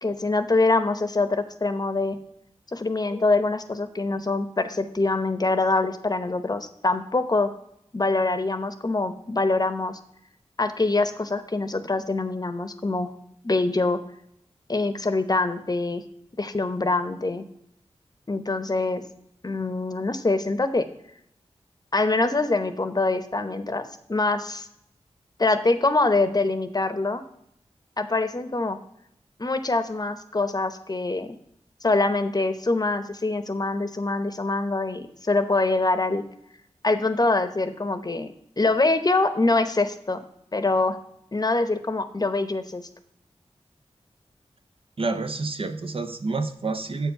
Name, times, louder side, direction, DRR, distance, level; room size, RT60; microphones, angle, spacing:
voice 1, 0.0-2.2 2.7-7.5 7.9-10.0 10.6-13.1 13.4-14.0 14.7-16.0 16.4-17.4 18.3-19.0 19.4-20.9 21.9-24.7 25.4-27.2 28.0-28.8 29.4-31.3 31.8-36.2 36.8-40.2 40.5-41.0 41.3-42.9, left 3 dB, 35° left, 10 dB, 0.8 m, -24 dB
voice 2, 45.0-47.1, right 3 dB, 55° right, 8 dB, 0.7 m, -28 dB
8.0 x 4.5 x 5.6 m, 0.75 s
cardioid pair, 50°, 11 cm